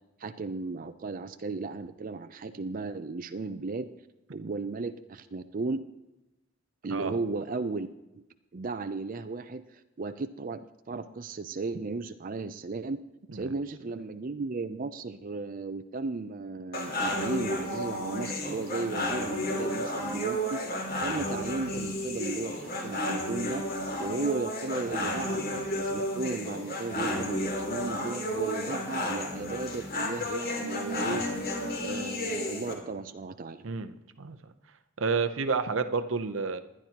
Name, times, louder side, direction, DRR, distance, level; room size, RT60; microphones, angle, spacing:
voice 1, 0.2-3.9 4.3-5.8 6.8-7.9 8.1-8.2 8.5-13.0 13.3-23.6 24.0-31.2 31.8-33.6, right 3 dB, 45° right, 10 dB, 0.5 m, -35 dB
sound 1, 16.7-32.7, left 1 dB, 50° left, 2.6 m, -32 dB
voice 2, 33.6-34.4 35.0-36.6, right 4 dB, 75° right, 10 dB, 0.8 m, -30 dB
20.0 x 11.5 x 2.9 m, 0.96 s
head